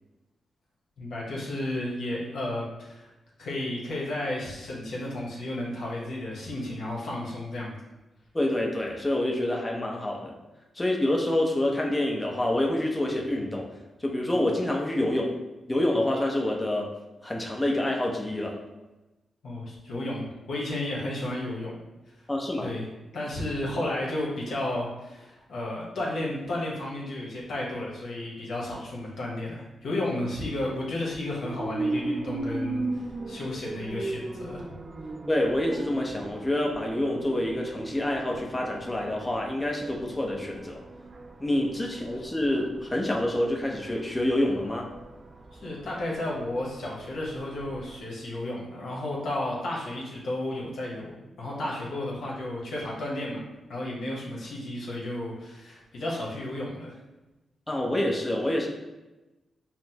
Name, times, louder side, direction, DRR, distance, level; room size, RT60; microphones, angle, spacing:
voice 1, 1.0-3.1 3.4-7.7 19.4-21.8 22.6-22.9 23.1-34.7 42.2-42.3 45.5-53.4 53.7-57.0, left 1 dB, 75° left, -4 dB, 1.0 m, -33 dB
voice 2, 8.3-10.3 10.7-13.7 14.0-15.3 15.7-16.9 17.2-18.5 22.3-22.7 35.3-40.8 41.4-44.9 57.7-58.7, left 1 dB, 20° left, -1 dB, 0.7 m, -27 dB
sound 1, 31.4-48.0, right 2 dB, 40° right, 0.4 m, -38 dB
5.8 x 2.1 x 2.8 m, 1.1 s
cardioid pair, 55°, 0 cm